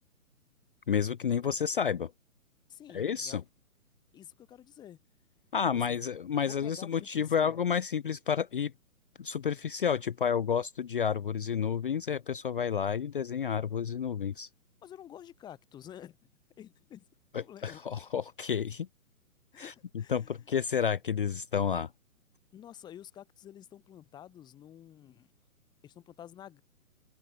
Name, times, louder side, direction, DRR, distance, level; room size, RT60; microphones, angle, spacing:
voice 1, 0.9-2.1 2.9-3.4 5.5-8.7 9.2-14.5 17.3-18.9 19.6-19.7 20.1-21.9, left 7 dB, 35° left, 0.6 m, -30 dB
voice 2, 2.7-3.4 4.1-5.0 5.7-6.0 6.4-7.6 14.8-16.3 16.6-17.0 17.3-17.8 19.5-20.4 22.5-25.3 25.8-26.6, left 10 dB, 10° left, 1.6 m, -50 dB
figure-of-eight pair, 130°, 44 cm